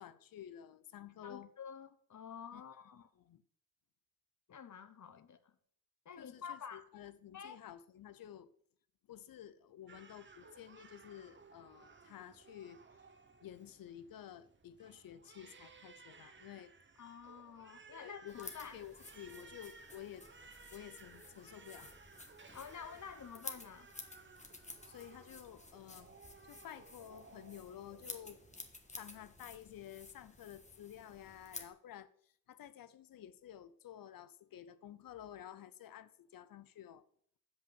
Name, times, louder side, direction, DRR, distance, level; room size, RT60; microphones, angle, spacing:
voice 1, 0.0-1.5 2.5-2.6 3.2-3.4 6.2-8.5 9.1-12.8 13.4-16.7 17.9-20.3 20.7-21.9 24.9-26.2 26.5-28.4 29.0-37.0, left 10 dB, 80° left, 0.6 m, -52 dB
voice 2, 1.2-3.1 4.5-5.5 6.0-6.9 7.3-7.6 17.0-18.8 22.5-23.9, left 7 dB, 60° left, 0.9 m, -49 dB
Crying sobbing, 9.9-28.7, right 4 dB, 35° right, 1.0 m, -59 dB
sound 1, 18.3-31.7, left 2 dB, 20° left, 1.4 m, -53 dB
7.9 x 5.6 x 7.4 m
cardioid pair, 70°, 34 cm